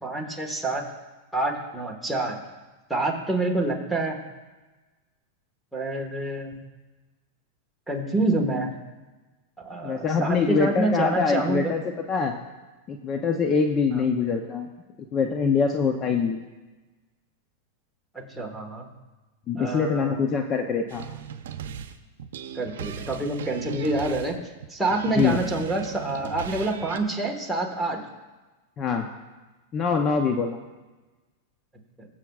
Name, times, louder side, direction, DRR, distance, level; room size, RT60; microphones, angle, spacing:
voice 1, 0.0-0.8 1.3-2.3 2.9-4.2 5.7-6.5 7.9-8.7 9.6-11.8 13.9-14.0 18.1-18.9 19.5-20.1 22.5-24.4 24.7-28.0 32.0-32.1, right 2 dB, ahead, -1 dB, 1.5 m, -27 dB
voice 2, 9.8-11.8 12.1-12.3 12.9-14.7 15.1-16.4 19.5-21.0 25.2-25.4 28.8-29.1 29.7-30.6, left 5 dB, 30° left, 4 dB, 0.6 m, -24 dB
sound 1, 20.9-27.0, right 8 dB, 80° right, 0.7 m, -37 dB
21.5 x 7.5 x 2.4 m, 1.2 s
supercardioid pair, 135°, 0 cm